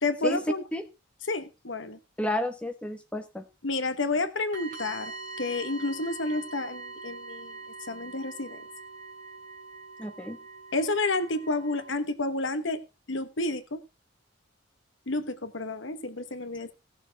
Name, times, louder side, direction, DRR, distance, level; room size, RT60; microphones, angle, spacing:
voice 1, 0.0-0.6 1.3-2.0 3.6-5.1 5.4-7.6 7.9-8.6 10.7-12.8 13.1-13.8 15.1-16.7, left 2 dB, 65° left, 1.1 m, -30 dB
voice 2, 2.2-3.4 10.0-10.4, left 1 dB, 5° left, 1.1 m, -31 dB
sound 1, 4.5-11.9, right 4 dB, 40° right, 2.9 m, -43 dB
16.5 x 6.8 x 4.6 m
head